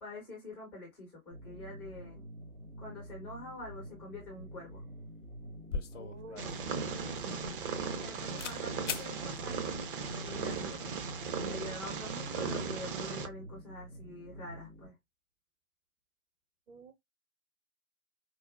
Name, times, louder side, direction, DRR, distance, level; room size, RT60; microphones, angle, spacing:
voice 1, 0.0-2.2 2.8-4.8 7.2-7.6 8.0-9.8 10.2-11.0 11.4-14.9, left 2 dB, 5° left, 0.4 m, -46 dB
sound 1, 1.3-14.9, right 1 dB, 85° right, 2.1 m, -49 dB
sound 2, 5.0-5.1 5.4-8.1 8.4-8.6 8.9-9.1, left 5 dB, 60° left, 0.6 m, -40 dB
voice 2, 5.9-6.6 16.7-16.9, right 4 dB, 60° right, 1.1 m, -50 dB
Purr, 6.4-13.3, right 5 dB, 40° right, 0.6 m, -37 dB
4.5 x 2.2 x 2.4 m
figure-of-eight pair, 115°, 42 cm